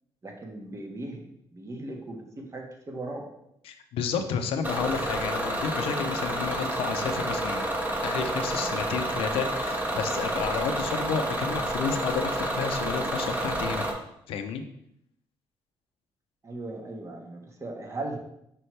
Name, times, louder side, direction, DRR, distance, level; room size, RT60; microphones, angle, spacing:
voice 1, 0.2-3.3 16.4-18.2, right 2 dB, 35° right, 1 dB, 1.5 m, -38 dB
voice 2, 3.6-7.7 8.0-13.9 14.3-14.6, left 6 dB, 80° left, 7 dB, 0.7 m, -31 dB
Bus / Engine, 4.6-13.9, right 1 dB, 20° right, 1.4 m, -29 dB
5.6 x 5.4 x 3.3 m, 0.76 s
cardioid pair, 75°, 9 cm